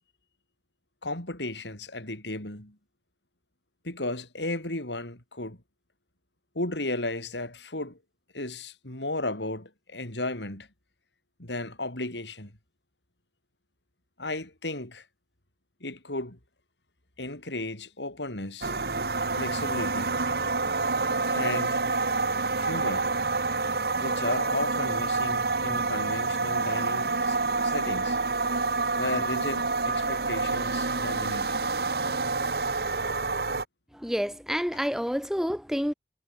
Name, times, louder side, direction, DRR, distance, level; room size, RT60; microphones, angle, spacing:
voice 1, 1.0-2.8 3.8-5.6 6.5-8.0 8.3-10.7 11.4-12.5 14.2-15.0 15.8-16.4 17.2-18.7 19.4-20.2 21.3-21.8 22.6-23.1 24.0-27.4 27.6-28.2 28.9-31.6, left 2 dB, 85° left, 6.0 m, -34 dB
sound 1, 18.6-33.6, right 3 dB, 60° right, 1.5 m, -28 dB
voice 2, 33.9-35.9, equal, 5° right, 4.3 m, -28 dB
head